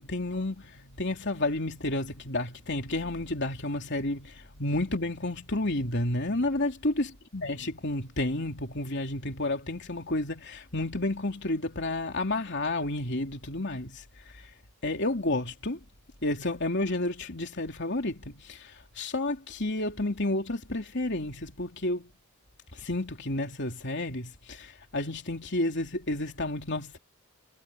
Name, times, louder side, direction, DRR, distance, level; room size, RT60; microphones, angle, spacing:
voice 1, 0.0-14.0 14.4-14.5 14.8-15.8 16.2-22.1 22.7-27.0, left 2 dB, 50° left, 3.3 m, -31 dB
head